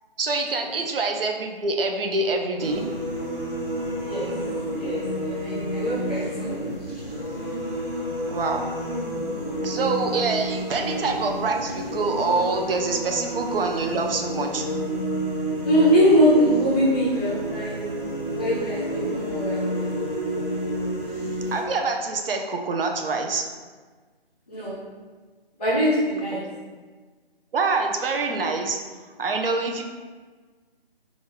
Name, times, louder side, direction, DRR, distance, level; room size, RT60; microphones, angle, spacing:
voice 1, 0.2-2.8 8.2-8.6 9.6-14.7 21.5-23.4 26.3-26.4 27.5-28.8 29.2-29.8, right 3 dB, 65° right, 3 dB, 0.5 m, -25 dB
sound 1, 2.6-21.6, equal, 15° right, 1.1 m, -30 dB
voice 2, 4.0-4.3 4.7-6.7 15.6-17.8 18.4-19.9 24.5-24.8 25.6-26.5, equal, 10° left, -9 dB, 0.5 m, -22 dB
3.9 x 2.4 x 3.3 m, 1.4 s
figure-of-eight pair, 155°, 31 cm